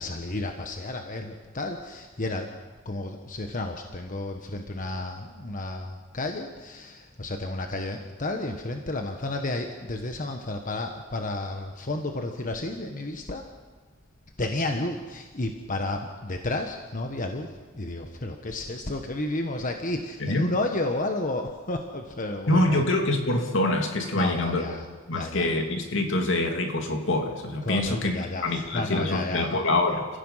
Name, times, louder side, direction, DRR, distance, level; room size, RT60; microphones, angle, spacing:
voice 1, 0.0-2.5 2.8-13.4 14.4-17.5 17.7-22.8 24.1-24.8 25.1-25.5 27.6-29.5, left 2 dB, 40° left, 4 dB, 1.4 m, -31 dB
voice 2, 22.5-24.8 25.1-30.1, left 2 dB, 65° left, 4 dB, 2.7 m, -25 dB
30.0 x 15.5 x 5.8 m, 1.4 s
head